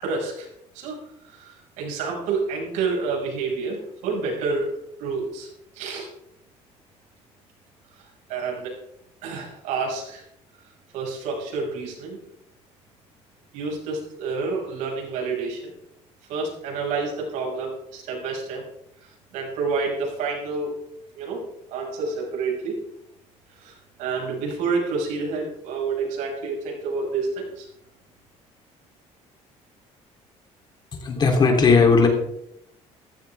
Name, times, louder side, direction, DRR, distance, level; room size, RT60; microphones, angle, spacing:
voice 1, 0.0-0.5 0.7-1.0 1.3-5.5 5.7-6.1 8.3-8.7 9.2-10.2 10.9-12.2 13.5-15.6 16.3-18.6 19.3-20.7 21.1-21.4 21.7-22.8 23.6-23.7 24.0-27.7, right 4 dB, 90° right, -1 dB, 6.0 m, -28 dB
voice 2, 30.9-32.1, left 4 dB, 35° left, 3 dB, 3.3 m, -17 dB
15.0 x 14.5 x 3.6 m, 0.75 s
cardioid pair, 135°, 12 cm